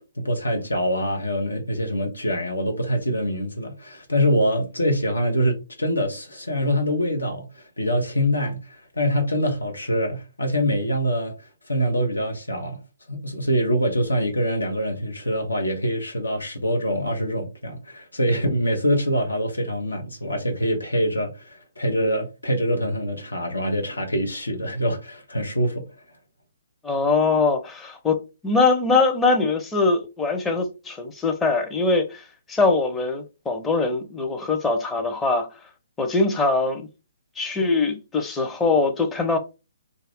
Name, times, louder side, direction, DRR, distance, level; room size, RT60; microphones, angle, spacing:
voice 1, 0.2-11.3 11.7-12.8 13.1-25.8, equal, 80° left, 0.8 m, -24 dB
voice 2, 26.8-28.2 28.4-35.5 36.0-36.9 37.4-39.4, left 3 dB, 10° left, 0.6 m, -22 dB
2.6 x 2.4 x 3.4 m
figure-of-eight pair, 135°, 0 cm